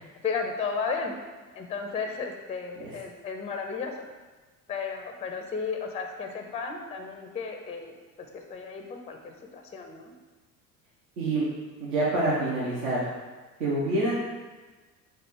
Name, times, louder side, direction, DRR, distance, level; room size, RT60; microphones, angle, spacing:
voice 1, 0.2-1.1 1.5-4.1 4.7-8.0 8.3-10.1, left 5 dB, 15° left, 3 dB, 0.4 m, -34 dB
voice 2, 11.8-13.0 13.6-14.2, right 2 dB, 70° right, -8 dB, 1.1 m, -26 dB
4.5 x 2.4 x 4.6 m, 1.3 s
hypercardioid pair, 65°, 48 cm